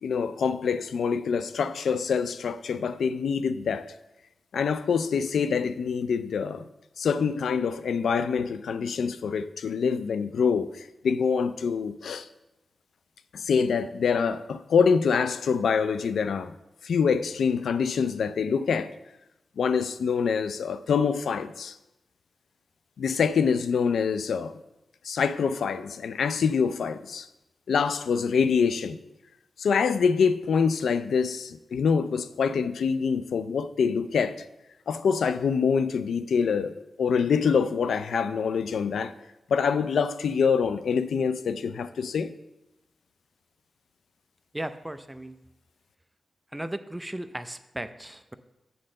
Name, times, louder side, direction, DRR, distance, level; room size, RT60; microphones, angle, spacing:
voice 1, 0.0-3.9 4.5-6.6 7.0-12.3 13.3-16.5 16.8-18.9 19.6-21.7 23.0-24.6 25.0-27.3 27.7-29.0 29.6-34.4 34.9-36.7 37.0-39.1 39.5-42.3, left 6 dB, 90° left, 0.3 m, -25 dB
voice 2, 44.5-45.4 46.5-48.3, right 1 dB, 15° right, 0.5 m, -36 dB
7.8 x 3.8 x 6.4 m
cardioid pair, 55°, 0 cm